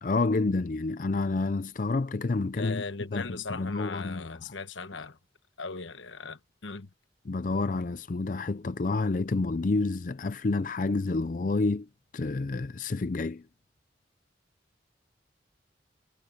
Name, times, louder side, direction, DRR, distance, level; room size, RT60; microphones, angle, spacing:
voice 1, 0.0-2.8 3.1-4.5 7.3-11.9 12.1-13.4, left 3 dB, 45° left, 0.5 m, -29 dB
voice 2, 2.6-5.2 5.6-6.9, left 4 dB, 85° left, 1.1 m, -38 dB
head